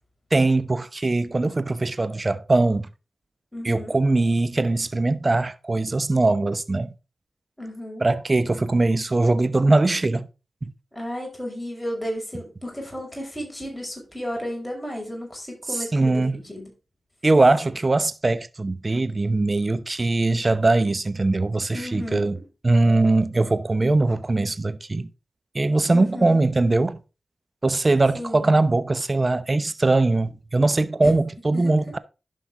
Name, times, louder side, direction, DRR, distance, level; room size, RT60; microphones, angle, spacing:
voice 1, 0.3-2.9 3.6-6.9 8.0-10.3 10.6-10.7 15.9-16.4 17.2-22.4 22.6-25.1 25.5-27.0 27.6-32.0, right 2 dB, 40° right, 0.8 m, -21 dB
voice 2, 3.5-4.0 7.6-8.1 10.9-16.7 21.7-22.4 25.9-26.5 28.1-28.6 31.0-31.1 31.5-31.7, equal, 15° left, 5.6 m, -33 dB
11.5 x 5.7 x 3.7 m
cardioid pair, 40°, 0 cm